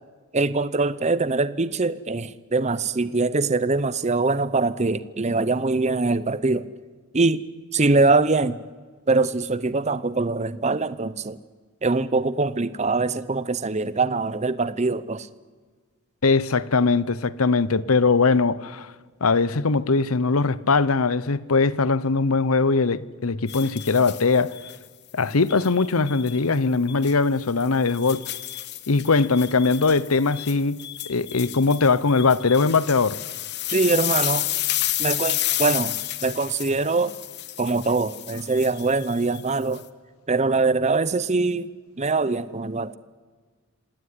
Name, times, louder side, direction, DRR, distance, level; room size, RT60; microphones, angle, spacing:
voice 1, 0.3-6.7 7.1-7.4 7.7-8.6 9.1-11.4 11.8-15.3 33.7-34.5 35.0-37.1 37.6-39.8 40.3-41.7 42.0-42.9, right 3 dB, 30° right, 0.8 m, -23 dB
voice 2, 16.2-18.9 19.2-24.5 25.1-28.2 28.9-33.2, left 4 dB, 90° left, 0.9 m, -21 dB
sound 1, 23.5-24.8 25.5-26.4 26.9-27.1 27.6-39.8, left 15 dB, 50° left, 1.0 m, -31 dB
26.5 x 18.0 x 9.8 m
head